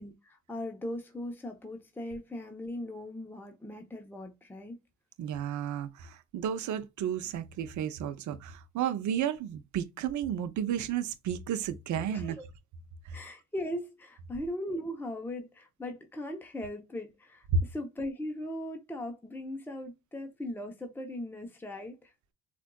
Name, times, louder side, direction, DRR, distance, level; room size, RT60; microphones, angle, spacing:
voice 1, 0.0-4.8 12.1-12.4 13.1-22.1, left 1 dB, 5° left, 0.7 m, -39 dB
voice 2, 5.2-12.4 13.1-13.2, right 9 dB, 70° right, 0.6 m, -33 dB
4.3 x 2.5 x 2.2 m
cardioid pair, 90°, 30 cm